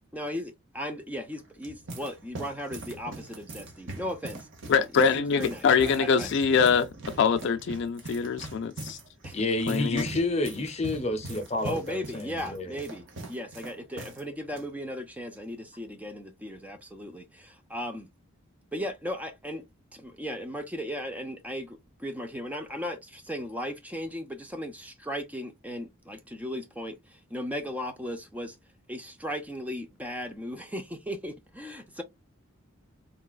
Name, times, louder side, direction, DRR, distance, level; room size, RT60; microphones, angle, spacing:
voice 1, 0.1-6.3 9.2-9.4 11.6-18.1 18.7-19.6 19.9-28.6 28.9-32.0, equal, 5° right, 0.4 m, -37 dB
sound 1, 1.3-14.2 14.5-14.6 15.4-15.7, right 2 dB, 60° right, 0.9 m, -42 dB
voice 2, 4.7-6.8 7.2-9.0 9.7-10.0, left 6 dB, 55° left, 0.3 m, -24 dB
voice 3, 9.3-12.8, left 2 dB, 30° left, 0.7 m, -29 dB
3.9 x 2.3 x 2.3 m
head